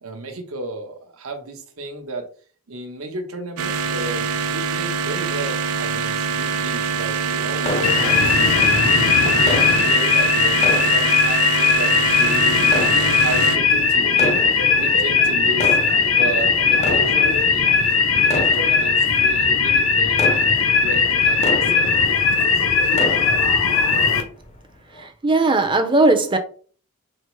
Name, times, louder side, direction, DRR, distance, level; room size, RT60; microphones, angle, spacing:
voice 1, 0.0-2.3 2.7-8.8 9.2-12.8 13.2-14.5 14.8-15.8 16.1-20.2 20.7-22.6, right 2 dB, 70° right, 1.0 m, -33 dB
sound 1, 3.6-13.6, right 6 dB, 85° right, 0.5 m, -24 dB
sound 2, 7.6-8.7 9.5-11.8 12.6-13.6 14.1-15.0 15.4-22.4 22.7-23.8 24.2-24.3 24.9-25.1, left 1 dB, 30° left, 0.6 m, -30 dB
sound 3, 7.8-24.2, left 5 dB, 65° left, 0.7 m, -18 dB
voice 2, 25.0-26.4, right 2 dB, 20° right, 0.6 m, -18 dB
4.5 x 2.0 x 4.6 m
head